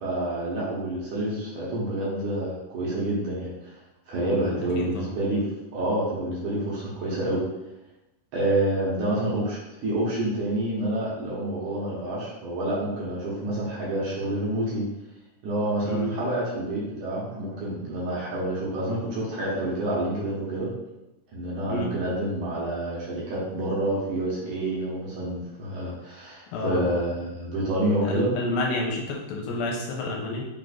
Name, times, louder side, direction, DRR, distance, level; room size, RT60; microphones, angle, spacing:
voice 1, 0.0-3.7 4.1-5.4 5.7-7.5 8.3-14.9 15.4-20.7 21.3-28.3, right 1 dB, 65° right, -6 dB, 2.1 m, -28 dB
voice 2, 4.3-5.1 15.8-16.1 21.7-21.9 26.5-26.8 28.0-30.5, left 2 dB, 85° left, -1 dB, 2.4 m, -30 dB
5.6 x 3.9 x 2.4 m, 0.96 s
omnidirectional pair, 4.2 m